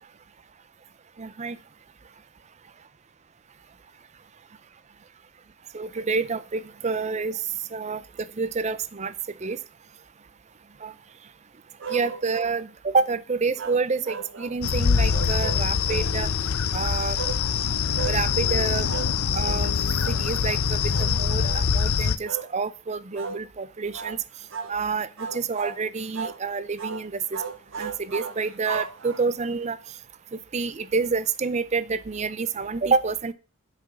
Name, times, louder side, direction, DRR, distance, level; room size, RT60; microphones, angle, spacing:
voice 1, 1.2-1.6 5.7-7.4 7.7-8.0 8.4-9.1 9.4-9.6 10.8-10.9 11.9-16.3 16.7-17.2 18.0-18.9 19.3-19.7 20.1-24.2 24.7-27.4 27.8-29.8 30.3-33.3, right 4 dB, 30° right, 16 dB, 0.5 m, -28 dB
sound 1, 11.8-12.6 13.6-14.6 15.1-16.1 17.2-17.4 17.9-18.2 18.9-19.2 19.4-19.7 20.0-20.3 20.9-21.1 21.4-21.7 22.2-22.5 23.1-23.4 23.9-24.2 24.5-24.8 25.2-25.8 26.1-26.4 26.8-27.0 27.3-29.5, right 5 dB, 60° right, 1.1 m, -35 dB
sound 2, 14.6-22.2, left 6 dB, 75° left, 0.6 m, -24 dB
8.0 x 6.0 x 7.0 m, 0.34 s
head